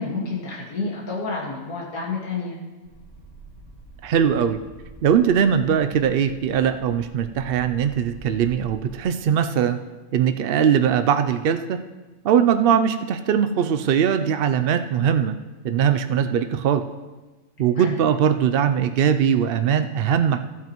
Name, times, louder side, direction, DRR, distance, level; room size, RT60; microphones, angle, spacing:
voice 1, 0.0-2.6 17.8-17.9, left 4 dB, 85° left, -4 dB, 2.2 m, -29 dB
sound 1, 2.8-9.0, right 2 dB, 10° left, 3.6 m, -45 dB
voice 2, 4.0-4.6 5.0-9.8 10.1-11.8 12.2-15.3 15.6-16.8 17.6-20.4, right 8 dB, 80° right, 9 dB, 0.5 m, -20 dB
15.5 x 8.3 x 3.0 m, 1.2 s
omnidirectional pair, 1.5 m